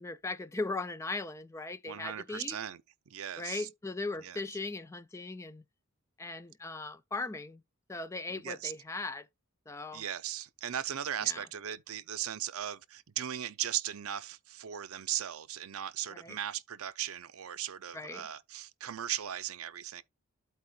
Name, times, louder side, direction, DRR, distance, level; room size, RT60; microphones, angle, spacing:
voice 1, 0.0-2.6 3.4-5.6 6.2-7.6 7.9-9.3 9.7-10.0 11.2-11.4 16.1-16.4 17.9-18.3, left 3 dB, 15° left, 0.3 m, -38 dB
voice 2, 1.9-3.7 4.2-4.4 8.3-8.7 9.9-20.0, right 11 dB, 80° right, 0.5 m, -38 dB
13.0 x 4.5 x 2.3 m
head